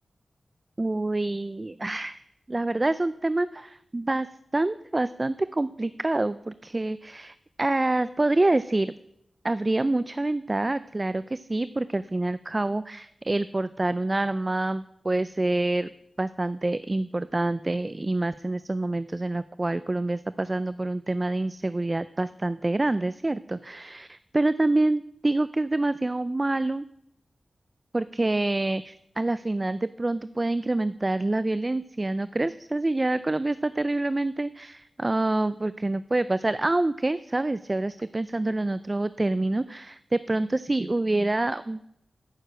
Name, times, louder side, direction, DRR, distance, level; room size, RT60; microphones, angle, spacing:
voice 1, 0.8-2.2 2.5-4.3 4.5-8.9 9.4-15.9 16.2-26.9 27.9-41.8, right 2 dB, 30° right, 15 dB, 0.3 m, -27 dB
9.2 x 6.7 x 7.5 m, 0.79 s
wide cardioid pair, 70°, 0 cm